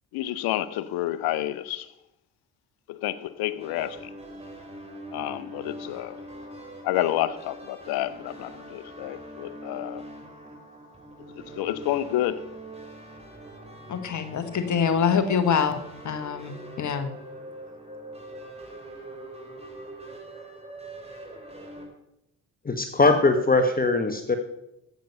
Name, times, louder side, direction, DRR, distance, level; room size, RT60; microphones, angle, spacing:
voice 1, 0.1-1.9 2.9-4.1 5.1-6.2 6.8-10.0 11.2-12.4, left 13 dB, 70° left, 0.8 m, -29 dB
sound 1, 3.6-21.9, right 1 dB, 15° right, 3.2 m, -43 dB
voice 2, 13.9-17.1, left 6 dB, 50° left, 1.2 m, -25 dB
voice 3, 22.6-24.4, left 3 dB, 25° left, 1.2 m, -21 dB
9.3 x 8.0 x 5.4 m
hypercardioid pair, 50°, 38 cm